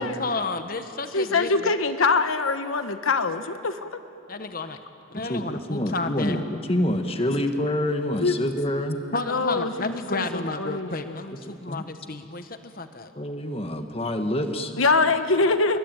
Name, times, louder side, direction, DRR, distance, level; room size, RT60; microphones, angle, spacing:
voice 1, 0.0-1.7 4.3-4.8 5.1-6.4 9.1-13.1, left 3 dB, 45° left, 8 dB, 1.3 m, -31 dB
voice 2, 1.1-3.8 8.2-8.3 9.1-11.2 14.8-15.8, left 3 dB, 90° left, 9 dB, 1.2 m, -24 dB
voice 3, 5.1-9.0 11.5-11.8 13.1-14.7, left 1 dB, 30° left, 6 dB, 1.5 m, -27 dB
28.5 x 22.5 x 9.2 m, 2.7 s
head